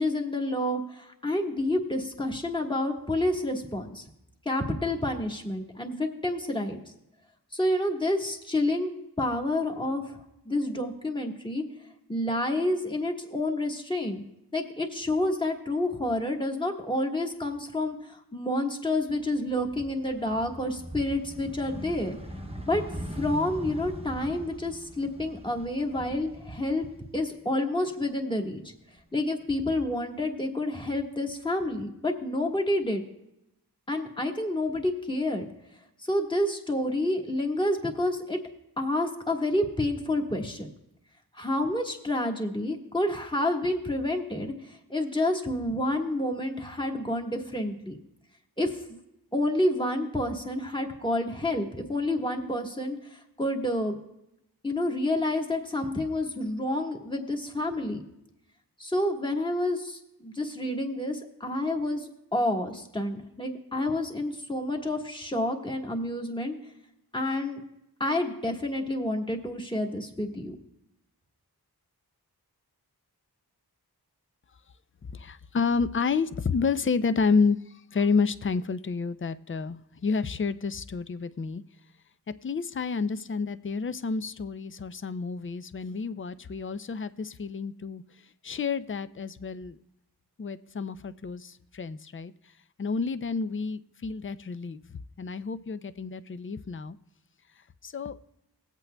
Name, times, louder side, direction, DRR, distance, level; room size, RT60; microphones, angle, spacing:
voice 1, 0.0-4.0 4.4-6.8 7.5-8.9 9.2-10.0 10.4-11.6 12.1-14.2 14.5-22.2 22.7-22.8 23.1-26.8 27.1-28.6 29.1-33.0 33.9-35.4 36.0-38.4 38.8-40.7 41.3-48.0 48.6-48.7 49.3-53.0 53.4-54.0 54.6-58.0 58.8-66.6 67.1-67.6 68.0-70.5, left 1 dB, 10° left, 1 dB, 1.4 m, -29 dB
sound 1, 19.3-27.5 27.8-29.0, equal, 15° right, 0.9 m, -41 dB
voice 2, 75.1-77.6 77.9-81.6 82.4-88.0 88.4-89.8 90.4-92.3 92.8-97.0 97.8-98.2, left 5 dB, 30° left, 13 dB, 0.4 m, -30 dB
19.5 x 8.2 x 2.2 m, 0.85 s
wide cardioid pair, 45°, 40 cm